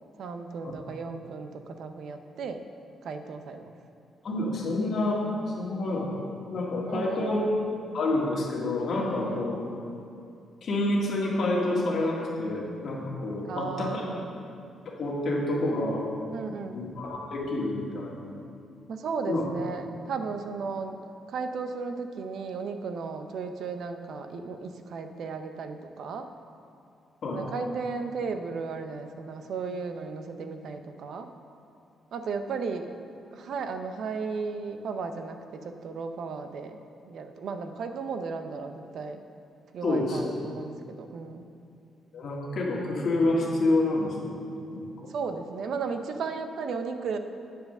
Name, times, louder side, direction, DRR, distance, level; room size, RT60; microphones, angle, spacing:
voice 1, 0.2-2.6 3.0-3.8 6.9-7.6 9.2-9.5 13.4-14.4 16.3-16.9 18.9-21.0 21.3-26.3 27.3-31.3 32.1-32.9 33.3-36.8 37.1-39.2 39.7-41.5 45.1-47.2, right 4 dB, 60° right, 7 dB, 0.6 m, -35 dB
voice 2, 4.2-5.2 5.6-6.1 6.5-7.4 7.9-9.6 10.6-14.0 14.9-16.0 16.7-18.1 19.3-19.4 27.2-27.4 39.8-40.2 42.1-44.4 44.7-45.1, left 2 dB, 50° left, -3 dB, 1.7 m, -28 dB
9.0 x 4.8 x 6.5 m, 2.6 s
cardioid pair, 150°, 0 cm